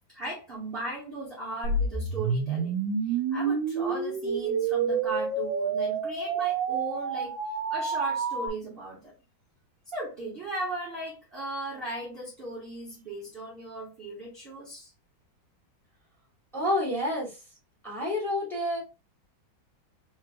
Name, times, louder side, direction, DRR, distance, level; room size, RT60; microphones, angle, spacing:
voice 1, 0.1-2.7 3.0-9.1 9.8-14.9, right 2 dB, 30° right, 1.4 m, -37 dB
sound 1, 1.6-8.5, right 5 dB, 75° right, 1.4 m, -28 dB
voice 2, 16.5-17.4 17.8-18.8, left 1 dB, ahead, 2.2 m, -29 dB
4.4 x 3.9 x 2.3 m
omnidirectional pair, 2.2 m